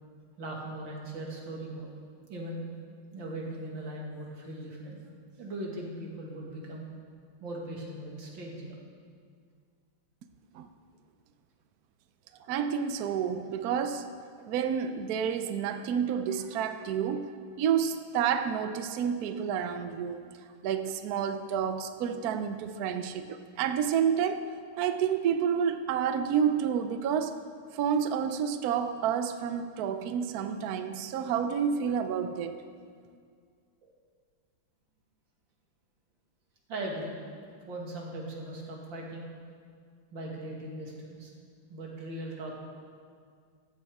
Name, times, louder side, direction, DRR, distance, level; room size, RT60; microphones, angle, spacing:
voice 1, 0.4-1.9 2.3-2.6 3.1-5.0 5.4-6.9 7.4-8.8 33.8-33.9 36.7-37.2 37.7-39.3 40.1-41.3 41.7-42.5, right 1 dB, 60° right, -2 dB, 2.6 m, -39 dB
voice 2, 12.5-14.1 14.5-17.3 17.6-20.2 20.6-24.5 24.8-27.4 27.7-32.6, right 8 dB, 80° right, 9 dB, 0.8 m, -29 dB
15.0 x 12.5 x 3.6 m, 2.1 s
omnidirectional pair, 2.4 m